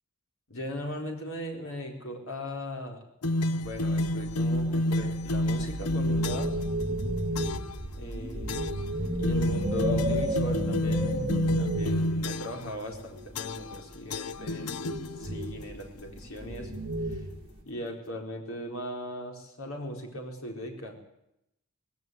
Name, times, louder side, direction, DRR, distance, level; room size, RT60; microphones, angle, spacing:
voice 1, 0.5-3.0 3.6-6.5 7.9-8.8 9.2-11.1 11.6-16.7 17.1-17.3 17.6-21.0, equal, 65° left, 2 dB, 4.5 m, -38 dB
sound 1, 3.2-6.7 7.3-7.8 8.5-8.9 9.2-12.7 13.3-13.8 14.1-15.4, left 1 dB, 85° left, 0.7 m, -29 dB
sound 2, 3.6-13.7 14.3-17.6, right 1 dB, 25° right, 4.1 m, -33 dB
19.0 x 16.5 x 9.5 m, 0.83 s
head